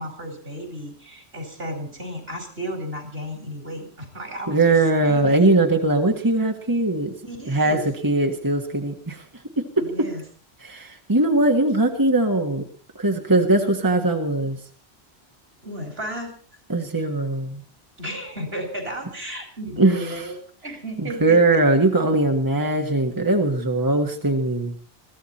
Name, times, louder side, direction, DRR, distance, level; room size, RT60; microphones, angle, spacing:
voice 1, 0.0-4.8 5.1-5.4 7.3-7.9 9.8-10.2 15.6-16.3 18.0-20.4 20.6-21.6, right 1 dB, 70° right, 5 dB, 4.9 m, -33 dB
voice 2, 4.5-7.1 7.5-9.2 9.6-10.1 10.6-12.6 13.0-14.6 16.7-17.6 19.8-20.2 21.0-24.7, right 2 dB, 20° right, 3 dB, 1.6 m, -20 dB
21.5 x 15.5 x 4.2 m, 0.41 s
omnidirectional pair, 1.1 m